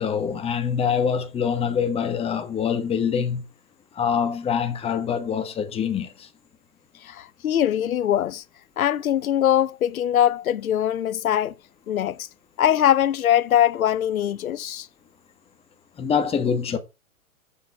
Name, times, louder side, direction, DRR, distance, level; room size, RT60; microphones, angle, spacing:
voice 1, 0.0-3.4 3.9-6.3 16.0-16.8, left 7 dB, 15° left, 1.5 m, -25 dB
voice 2, 7.0-8.4 8.8-11.5 11.9-12.3 12.6-14.9, left 11 dB, 90° left, 0.6 m, -22 dB
7.4 x 6.6 x 7.0 m
hypercardioid pair, 130°, 41 cm